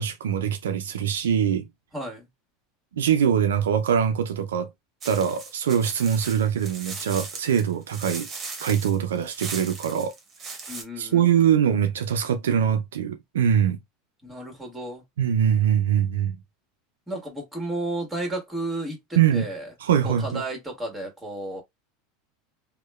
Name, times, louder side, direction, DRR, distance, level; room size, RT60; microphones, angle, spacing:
voice 1, 0.0-1.6 2.9-4.7 5.0-8.3 8.6-10.1 11.0-13.8 15.2-16.3 19.2-19.5 19.8-20.4, right 8 dB, 85° right, 0.3 m, -23 dB
voice 2, 1.9-2.3 10.7-11.8 14.2-15.0 17.1-19.7 20.0-21.6, right 1 dB, 10° right, 1.4 m, -33 dB
sound 1, 5.0-10.8, right 4 dB, 35° right, 1.0 m, -38 dB
2.8 x 2.1 x 2.2 m
hypercardioid pair, 95°, 0 cm